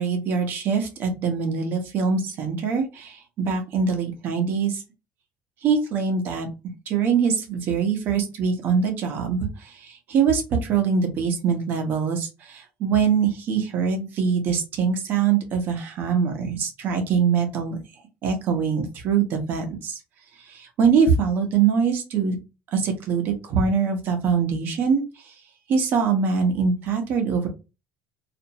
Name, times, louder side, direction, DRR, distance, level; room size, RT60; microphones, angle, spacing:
voice 1, 0.0-4.8 5.6-6.5 6.9-17.8 18.2-20.0 20.4-22.4 22.7-25.3 25.7-27.5, right 6 dB, 55° right, 4 dB, 0.9 m, -23 dB
2.5 x 2.1 x 2.8 m, 0.28 s
cardioid pair, 130°, 4 cm